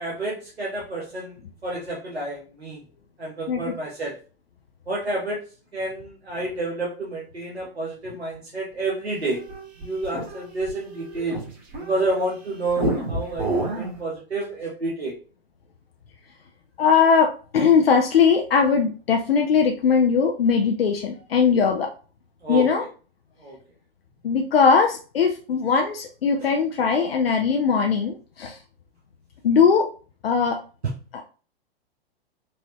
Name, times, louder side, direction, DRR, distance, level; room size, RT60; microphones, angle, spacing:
voice 1, 0.0-1.4 1.6-2.8 3.2-4.1 4.9-5.4 5.7-9.4 9.8-11.4 11.8-15.1 22.4-22.7 23.4-23.6 26.4-26.5, right 2 dB, 85° right, -4 dB, 1.1 m, -29 dB
sound 1, 9.2-12.2 12.7-14.0, right 2 dB, 30° right, 1.6 m, -29 dB
voice 2, 16.8-21.9 22.5-22.8 24.2-28.6 29.4-29.9 30.2-30.6 31.1-31.2, left 6 dB, 65° left, 2 dB, 0.7 m, -20 dB
4.6 x 2.8 x 3.0 m, 0.37 s
figure-of-eight pair, 105°, 31 cm